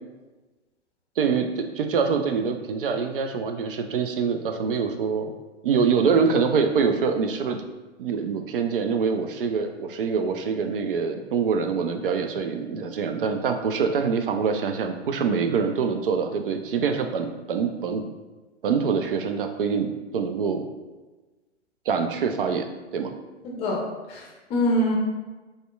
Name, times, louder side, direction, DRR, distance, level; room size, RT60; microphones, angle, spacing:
voice 1, 1.2-5.3 5.6-7.6 8.0-18.0 18.6-20.6 21.9-22.7 22.9-23.1, right 5 dB, 50° right, 6 dB, 0.5 m, -25 dB
voice 2, 23.4-23.8 24.1-24.9, equal, 20° left, -2 dB, 0.7 m, -24 dB
6.3 x 2.2 x 2.3 m, 1.2 s
figure-of-eight pair, 115°, 35 cm